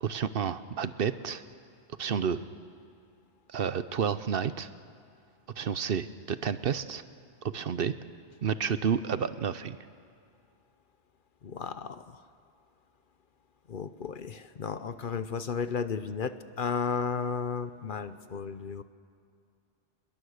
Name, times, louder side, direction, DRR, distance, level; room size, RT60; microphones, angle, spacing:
voice 1, 0.0-1.4 2.0-2.4 3.5-4.7 5.6-7.0 7.4-7.9 8.4-9.8, right 7 dB, 60° right, 13 dB, 0.9 m, -30 dB
voice 2, 11.4-12.2 13.7-18.8, left 6 dB, 55° left, 12 dB, 0.9 m, -34 dB
27.5 x 21.0 x 6.5 m, 2.3 s
omnidirectional pair, 1.1 m